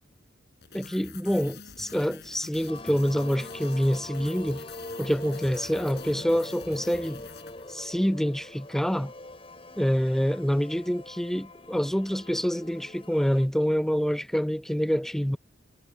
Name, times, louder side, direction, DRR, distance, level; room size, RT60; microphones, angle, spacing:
sound 1, 0.6-8.2, left 5 dB, 55° left, 3.9 m, -47 dB
voice 1, 0.7-4.6 5.0-7.2 7.7-9.1 9.8-15.4, equal, ahead, 0.4 m, -26 dB
sound 2, 2.7-13.5, left 2 dB, 30° left, 6.7 m, -43 dB
head